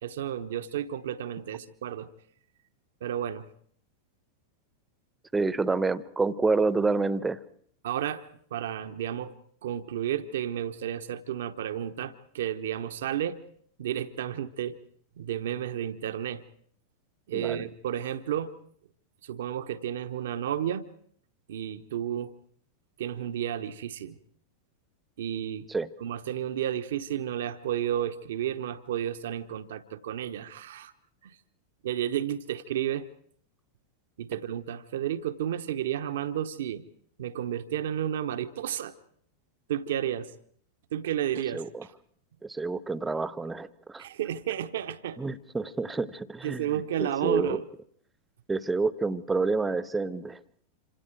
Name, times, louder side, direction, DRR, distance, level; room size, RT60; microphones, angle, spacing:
voice 1, 0.0-2.1 3.0-3.5 7.8-8.2 8.5-9.3 9.6-13.4 13.8-14.8 15.2-16.4 17.3-18.5 19.2-20.9 21.5-22.3 23.0-24.2 25.2-25.7 26.0-30.9 31.2-31.4 31.8-33.1 34.2-36.8 37.2-38.9 39.7-40.3 40.9-41.9 44.0-45.2 46.4-47.7, right 10 dB, 60° right, 10 dB, 1.1 m, -32 dB
voice 2, 5.3-7.4 17.3-17.7 25.7-25.9 41.5-41.9 42.4-44.0 45.2-47.6 48.5-50.4, right 3 dB, 10° right, 18 dB, 1.0 m, -28 dB
27.0 x 26.0 x 4.7 m, 0.63 s
figure-of-eight pair, 90°, 0 cm